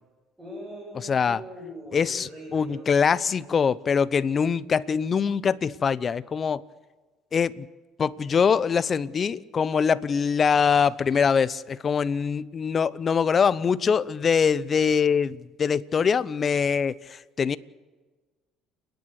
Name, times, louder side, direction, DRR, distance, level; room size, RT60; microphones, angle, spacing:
voice 1, 0.4-2.9, equal, 15° right, -4 dB, 8.0 m, -41 dB
voice 2, 0.9-1.4 1.9-6.6 7.3-7.7 8.0-17.6, left 6 dB, 40° left, 18 dB, 0.8 m, -23 dB
30.0 x 10.5 x 8.2 m, 1.3 s
supercardioid pair, 90°, 0 cm